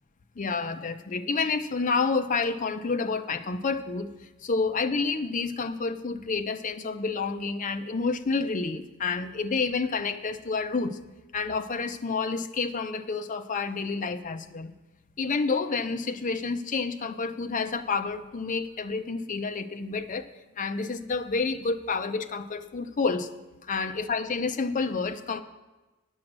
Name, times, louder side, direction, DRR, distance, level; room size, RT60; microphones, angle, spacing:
voice 1, 0.4-11.0 11.3-14.7 15.2-20.3 20.6-23.3 23.6-25.4, left 4 dB, 40° left, 8 dB, 0.5 m, -29 dB
9.7 x 6.3 x 7.4 m, 1.1 s
head